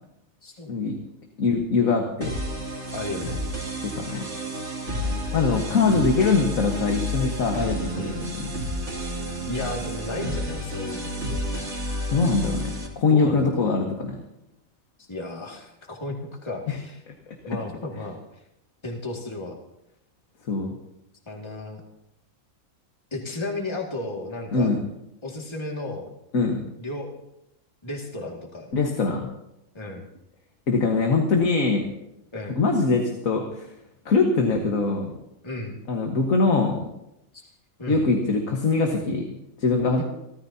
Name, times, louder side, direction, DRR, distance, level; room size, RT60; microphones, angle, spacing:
voice 1, 1.4-2.4 3.8-4.3 5.3-8.5 12.1-14.2 16.7-16.8 20.5-20.7 24.5-24.8 26.3-26.6 28.7-29.3 30.7-31.9 32.5-33.7 34.1-35.1 35.9-36.8 37.9-39.3 39.6-40.0, left 4 dB, 70° left, 2 dB, 1.9 m, -22 dB
sound 1, 2.2-12.9, equal, 55° right, 3.0 m, -30 dB
voice 2, 2.9-3.4 5.0-5.4 8.0-8.2 9.4-11.4 13.1-13.8 15.1-16.2 16.4-17.0 17.5-18.2 18.8-19.6 21.3-21.8 23.1-24.7 25.2-26.1 26.8-27.1 27.8-28.7 29.7-30.1 32.3-32.6 35.4-35.8 37.3-37.5 37.8-38.1 40.0-40.1, left 2 dB, 20° left, -1 dB, 2.2 m, -34 dB
28.0 x 13.5 x 2.9 m, 0.83 s
omnidirectional pair, 1.5 m